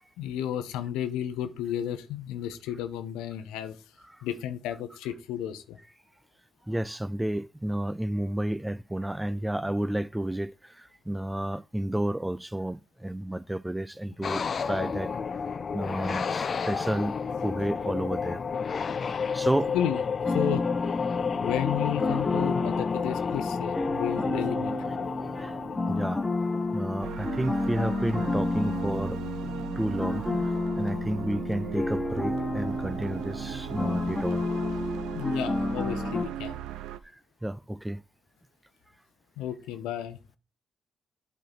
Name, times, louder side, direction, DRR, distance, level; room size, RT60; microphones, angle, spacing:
voice 1, 0.2-3.8 4.2-5.8 19.7-20.0 20.3-20.6 21.4-24.8 35.1-36.5 39.4-40.2, left 10 dB, 80° left, 0.7 m, -32 dB
voice 2, 6.7-10.5 11.1-15.1 15.7-17.2 17.4-18.4 19.3-19.7 25.3-25.6 25.9-26.2 26.7-29.5 29.8-30.2 30.8-34.5 37.4-38.0, right 1 dB, 10° right, 0.4 m, -31 dB
sound 1, 14.2-27.2, left 6 dB, 50° left, 0.5 m, -31 dB
sound 2, 20.2-36.2, left 2 dB, 20° left, 1.2 m, -31 dB
sound 3, 27.0-37.0, right 12 dB, 80° right, 0.5 m, -38 dB
9.0 x 4.5 x 4.1 m
hypercardioid pair, 50°, 0 cm